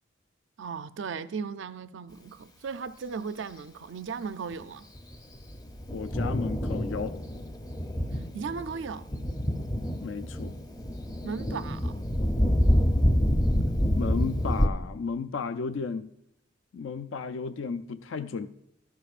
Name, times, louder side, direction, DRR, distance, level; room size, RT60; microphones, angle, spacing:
voice 1, 0.6-4.9 8.3-9.1 11.2-12.0, right 5 dB, 70° right, 0.4 m, -36 dB
Thunder, 4.9-14.7, equal, 20° left, 0.6 m, -27 dB
voice 2, 5.9-7.2 10.0-10.6 13.9-16.1 16.7-18.5, left 5 dB, 70° left, 0.4 m, -33 dB
12.5 x 11.0 x 2.5 m
head